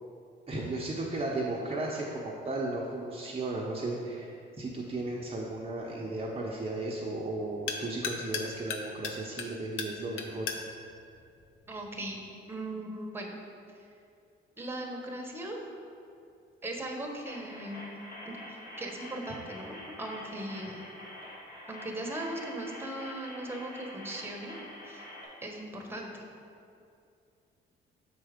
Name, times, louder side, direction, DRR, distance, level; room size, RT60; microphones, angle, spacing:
voice 1, 0.5-10.5, right 2 dB, 30° right, -3 dB, 0.8 m, -35 dB
sound 1, 4.6-12.2, left 5 dB, 85° left, 0.7 m, -41 dB
voice 2, 11.7-13.3 14.6-15.6 16.6-18.0 18.2-20.8 21.7-24.5 24.8-25.1 25.4-26.2, right 1 dB, 10° right, 1 dB, 1.2 m, -39 dB
sound 2, 17.2-25.2, equal, 45° left, 1.7 m, -46 dB
6.8 x 4.5 x 5.1 m, 2.5 s
cardioid pair, 90°, 20 cm